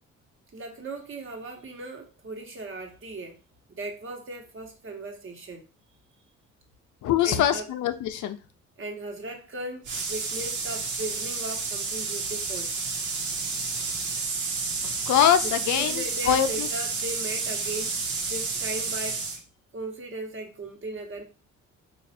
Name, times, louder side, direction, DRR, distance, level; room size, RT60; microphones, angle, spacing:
voice 1, 0.5-3.4 3.7-5.6 7.2-7.6 8.8-12.7 15.4-19.3 19.7-21.2, right 2 dB, 45° right, 2 dB, 1.1 m, -37 dB
voice 2, 7.0-8.4 14.8-16.7, left 9 dB, 75° left, 9 dB, 0.5 m, -23 dB
sound 1, 9.8-19.4, right 4 dB, 80° right, 1.0 m, -30 dB
3.2 x 2.5 x 4.1 m, 0.32 s
cardioid pair, 90°, 30 cm